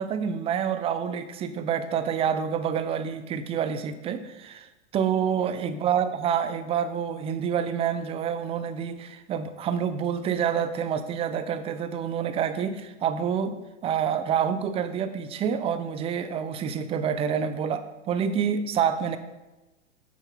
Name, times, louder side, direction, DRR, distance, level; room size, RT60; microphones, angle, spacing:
voice 1, 0.0-19.2, right 8 dB, 15° right, 12 dB, 0.5 m, -28 dB
9.4 x 7.9 x 3.9 m, 1.1 s
figure-of-eight pair, 100°, 37 cm